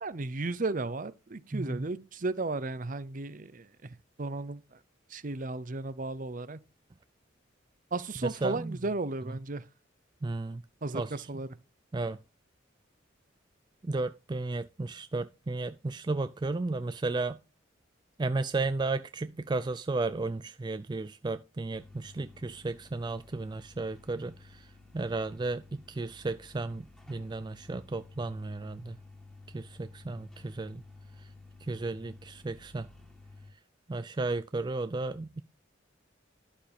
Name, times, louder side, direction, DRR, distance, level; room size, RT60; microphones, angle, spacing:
voice 1, 0.0-4.8 5.1-6.6 7.9-9.6 10.8-11.5, right 3 dB, 40° right, 0.7 m, -35 dB
voice 2, 1.5-1.9 8.4-8.8 10.2-10.6 10.9-11.1 11.9-12.2 13.8-17.4 18.2-24.7 24.9-29.0 29.5-30.8 31.7-32.9 33.9-35.4, right 3 dB, 25° right, 0.4 m, -34 dB
sound 1, 21.7-33.5, left 3 dB, 5° left, 2.1 m, -53 dB
11.5 x 7.1 x 3.5 m
head